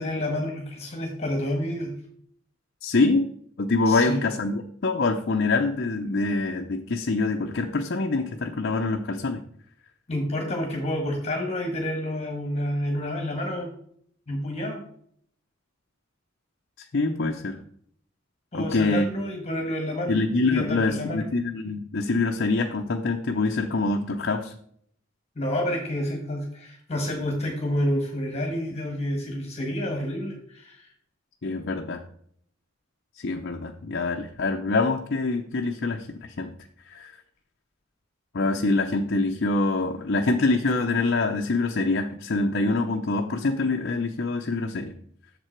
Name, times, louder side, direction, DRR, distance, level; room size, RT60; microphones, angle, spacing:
voice 1, 0.0-1.9 3.9-4.2 10.1-13.7 14.3-14.8 18.5-20.2 20.5-21.3 25.4-30.9, left 1 dB, 35° left, 2 dB, 1.5 m, -29 dB
voice 2, 2.8-3.3 3.6-9.4 16.8-17.6 18.5-19.1 20.1-24.5 31.4-32.0 33.2-36.5 36.9-37.1 38.3-44.9, left 3 dB, 55° left, 3 dB, 0.6 m, -25 dB
7.8 x 6.8 x 4.5 m, 0.65 s
head